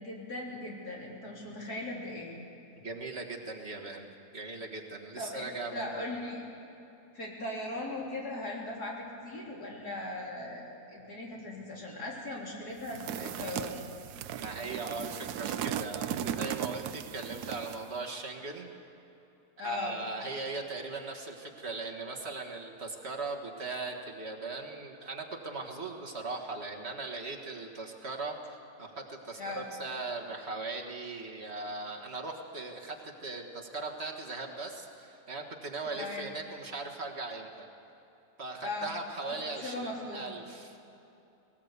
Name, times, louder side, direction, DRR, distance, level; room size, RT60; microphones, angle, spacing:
voice 1, 0.0-2.3 5.2-6.4 7.1-10.6 10.9-13.8 19.6-20.0 29.4-29.7 36.0-36.3 38.6-38.9 39.2-39.4 39.6-40.4, left 2 dB, 85° left, -3 dB, 4.1 m, -38 dB
voice 2, 2.8-6.1 14.4-18.7 19.6-37.7 38.4-40.8, right 3 dB, 45° right, 1 dB, 1.9 m, -39 dB
sound 1, 12.8-17.9, right 10 dB, 85° right, 1.2 m, -37 dB
19.5 x 19.0 x 8.2 m, 2.9 s
omnidirectional pair, 1.6 m